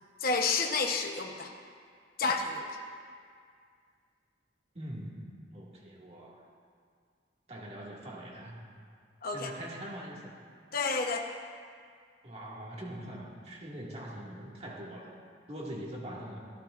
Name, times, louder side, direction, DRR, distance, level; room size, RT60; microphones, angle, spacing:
voice 1, 0.2-1.5 2.2-2.7 9.2-9.5 10.7-11.3, left 4 dB, 55° left, 3 dB, 1.0 m, -30 dB
voice 2, 4.7-6.4 7.5-8.7 9.3-10.4 12.2-15.2 15.5-16.4, right 1 dB, 35° right, -3 dB, 2.1 m, -43 dB
25.0 x 13.5 x 2.6 m, 2.1 s
head